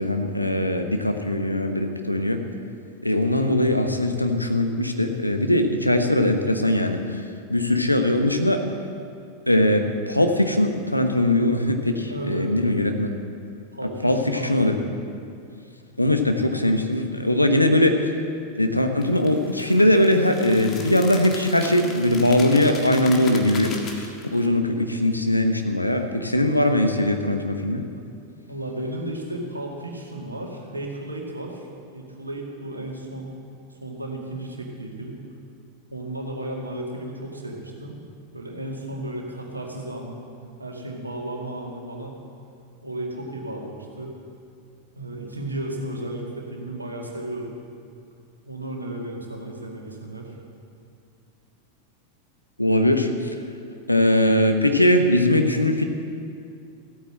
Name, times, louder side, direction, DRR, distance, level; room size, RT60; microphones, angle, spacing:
voice 1, 0.0-2.4 3.0-7.2 7.5-8.6 9.5-13.1 14.0-14.8 16.0-18.0 18.6-23.7 24.0-27.8 52.6-53.3 53.9-55.9, left 1 dB, 85° left, 6 dB, 1.0 m, -21 dB
voice 2, 12.1-12.5 13.7-14.8 28.4-31.7 31.9-33.4 33.7-35.2 35.9-38.0 38.3-40.2 40.6-42.2 42.8-44.2 45.0-47.5 48.5-50.3, right 1 dB, 80° right, 0 dB, 2.1 m, -34 dB
sound 1, 19.0-24.5, left 4 dB, 30° left, 1.7 m, -38 dB
15.0 x 9.1 x 7.6 m, 2.4 s
figure-of-eight pair, 90°, 0 cm